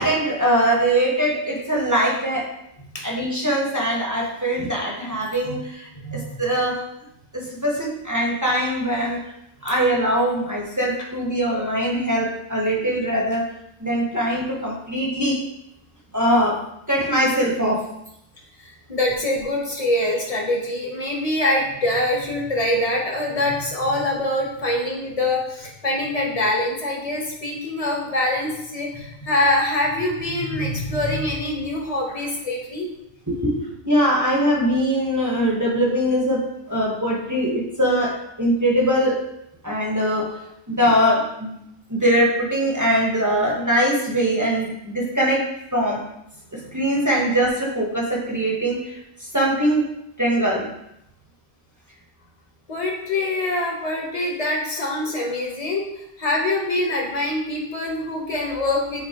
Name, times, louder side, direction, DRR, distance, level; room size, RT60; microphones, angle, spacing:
voice 1, 0.0-2.5 3.0-6.9 7.3-9.2 9.6-13.5 13.8-15.4 16.1-17.9 33.3-39.2 39.6-40.4 40.7-41.5 41.9-46.0 46.5-49.8 50.2-50.7, equal, 15° right, -3 dB, 1.1 m, -22 dB
voice 2, 5.9-6.4 18.6-32.9 46.6-46.8 52.7-55.9 56.2-59.1, left 1 dB, 30° left, -1 dB, 1.3 m, -24 dB
9.1 x 4.2 x 2.9 m, 0.82 s
omnidirectional pair, 1.2 m